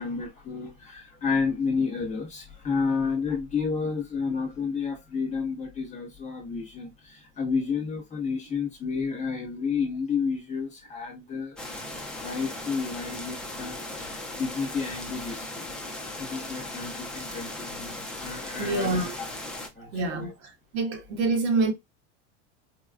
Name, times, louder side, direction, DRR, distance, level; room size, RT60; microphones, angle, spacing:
voice 1, 0.0-11.5 12.1-19.2 19.8-20.3, left 5 dB, 20° left, 1.2 m, -31 dB
sound 1, 11.6-19.7, left 1 dB, ahead, 0.7 m, -37 dB
voice 2, 18.6-19.1 19.9-20.3 20.7-21.7, right 3 dB, 65° right, 1.6 m, -26 dB
4.3 x 2.4 x 2.4 m
supercardioid pair, 130°, 36 cm